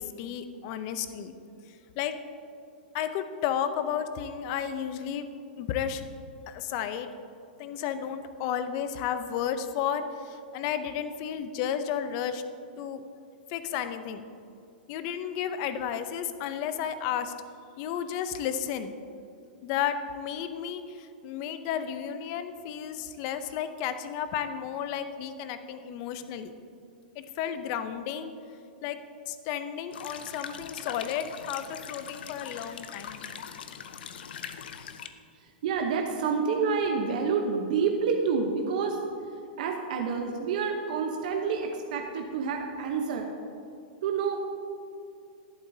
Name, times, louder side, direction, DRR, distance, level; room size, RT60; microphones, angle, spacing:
voice 1, 0.0-1.3 2.0-2.2 2.9-5.3 5.6-6.0 6.5-7.1 7.6-12.4 12.8-13.0 13.5-14.2 14.9-17.3 17.8-18.9 19.6-26.5 27.2-28.3 28.8-29.0 29.3-33.3, left 9 dB, 35° left, 10 dB, 0.6 m, -32 dB
sound 1, 29.9-35.1, left 8 dB, 75° left, 0.7 m, -42 dB
voice 2, 35.4-39.0 39.6-43.3 44.0-44.4, right 5 dB, 55° right, 2 dB, 0.9 m, -28 dB
11.5 x 11.0 x 2.7 m, 2.5 s
supercardioid pair, 165°, 5 cm